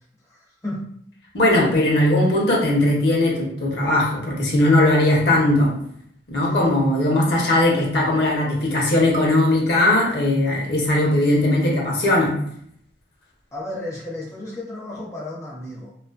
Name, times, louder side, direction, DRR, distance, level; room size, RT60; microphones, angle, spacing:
voice 1, 0.2-0.9 6.4-6.7 13.5-15.9, left 1 dB, 15° left, -4 dB, 0.4 m, -33 dB
voice 2, 1.3-5.7 6.3-12.3, left 1 dB, 65° left, -2 dB, 0.7 m, -19 dB
2.5 x 2.4 x 2.4 m, 0.67 s
head